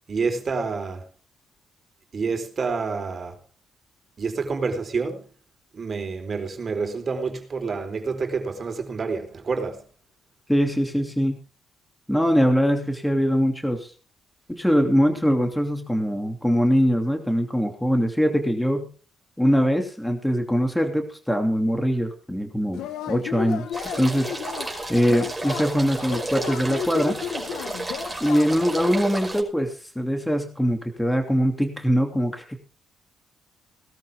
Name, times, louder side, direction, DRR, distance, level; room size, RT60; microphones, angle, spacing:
voice 1, 0.1-1.0 2.1-3.4 4.2-5.3 5.7-9.9, right 4 dB, 40° right, 4.1 m, -28 dB
voice 2, 10.5-11.4 12.1-13.9 14.5-18.9 19.4-22.8 23.1-23.7 24.0-24.3 24.9-27.2 28.2-32.6, equal, 5° left, 2.7 m, -22 dB
Yell / Cheering, 22.7-28.8, left 9 dB, 80° left, 1.4 m, -34 dB
sound 1, 23.7-29.4, right 2 dB, 15° right, 5.4 m, -32 dB
18.5 x 13.0 x 3.6 m
cardioid pair, 90°, 0 cm